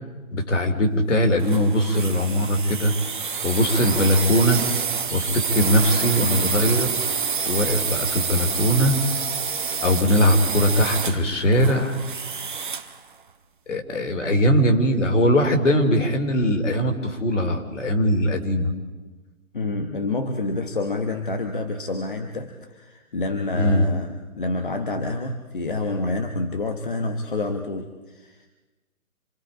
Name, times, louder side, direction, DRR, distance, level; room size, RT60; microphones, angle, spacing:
voice 1, 0.3-2.9 3.4-4.6 5.1-7.0 7.5-9.0 9.8-12.0 13.7-18.7 23.5-23.9, equal, 60° left, 4 dB, 3.2 m, -20 dB
sound 1, 1.4-13.0, right 5 dB, 35° right, 1.0 m, -27 dB
voice 2, 19.5-28.5, left 3 dB, 40° left, 6 dB, 1.1 m, -28 dB
27.0 x 21.0 x 5.0 m, 1.2 s
hypercardioid pair, 175°, 42 cm